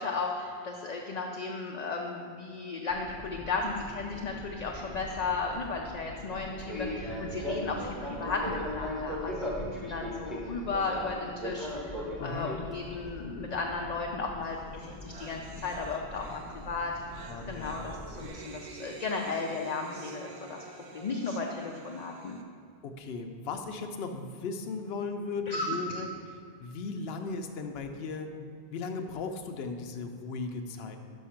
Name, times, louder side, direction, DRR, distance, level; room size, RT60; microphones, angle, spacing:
voice 1, 0.0-16.9 17.4-20.6 20.9-22.4 25.5-26.0, left 3 dB, 50° left, 1 dB, 0.6 m, -35 dB
Fixed-wing aircraft airplane, 2.9-18.3, left 1 dB, ahead, 1.0 m, -40 dB
voice 2, 12.2-12.5 17.3-17.7 22.8-26.1 26.6-28.3 28.7-31.0, left 4 dB, 75° left, 5 dB, 0.9 m, -36 dB
sound 1, 14.5-14.6 14.8-22.4, right 4 dB, 90° right, 0.9 m, -48 dB
6.3 x 5.5 x 5.8 m, 2.3 s
omnidirectional pair, 1.1 m